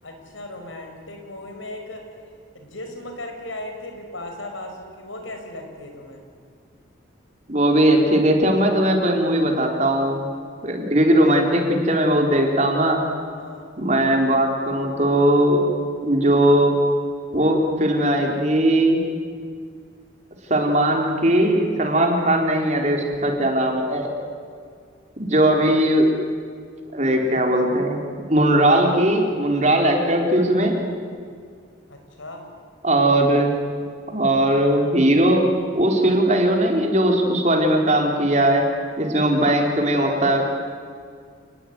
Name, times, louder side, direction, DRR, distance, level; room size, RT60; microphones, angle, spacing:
voice 1, 0.0-2.1 2.5-6.2 13.4-13.7 31.9-32.5, left 1 dB, 80° left, 4 dB, 5.8 m, -37 dB
voice 2, 7.5-10.3 10.6-13.0 13.8-15.6 16.0-16.8 17.3-19.0 20.5-24.1 25.2-26.1 26.9-28.0 28.3-30.8 32.8-33.5 34.1-35.5 35.7-38.7 39.0-40.5, right 1 dB, 35° right, 2 dB, 4.2 m, -19 dB
29.5 x 20.5 x 9.6 m, 2.2 s
head